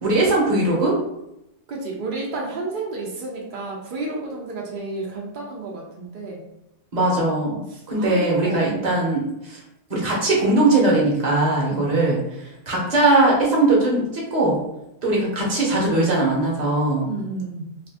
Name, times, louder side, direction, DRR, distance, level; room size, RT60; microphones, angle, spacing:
voice 1, 0.0-1.0 6.9-7.6 7.9-9.6 9.9-12.2 12.7-14.6 15.0-17.1, right 2 dB, 35° right, -3 dB, 0.7 m, -20 dB
voice 2, 1.7-6.4 7.7-8.9 11.7-11.8 17.1-17.7, right 3 dB, 90° right, -2 dB, 0.4 m, -31 dB
2.6 x 2.5 x 3.4 m, 0.86 s
omnidirectional pair, 1.6 m